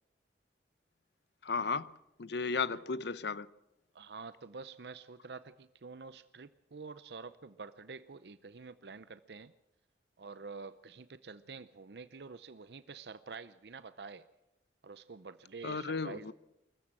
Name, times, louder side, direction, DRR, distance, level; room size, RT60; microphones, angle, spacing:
voice 1, 1.4-1.9 2.2-3.5 15.6-16.3, left 4 dB, 70° left, 0.7 m, -34 dB
voice 2, 3.9-9.5 10.2-14.3 14.8-16.3, right 4 dB, 65° right, 0.6 m, -48 dB
24.0 x 15.0 x 7.7 m
head